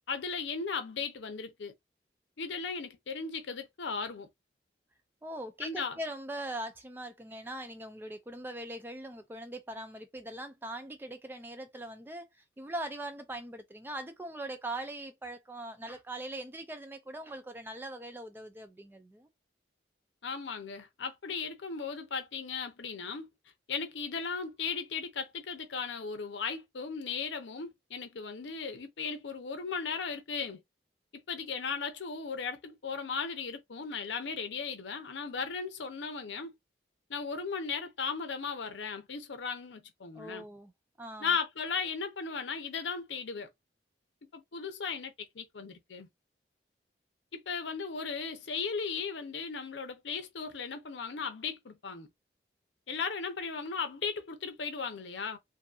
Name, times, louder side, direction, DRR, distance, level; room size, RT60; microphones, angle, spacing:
voice 1, 0.1-1.7 2.4-4.3 5.6-6.0 20.2-23.3 23.7-30.6 31.1-36.6 37.1-40.4 41.2-43.5 44.3-46.1 47.3-52.1 52.9-55.4, left 5 dB, 80° left, 0.6 m, -36 dB
voice 2, 5.2-19.3 40.1-40.7 41.0-41.4, right 1 dB, 10° right, 0.3 m, -41 dB
2.6 x 2.6 x 2.3 m
head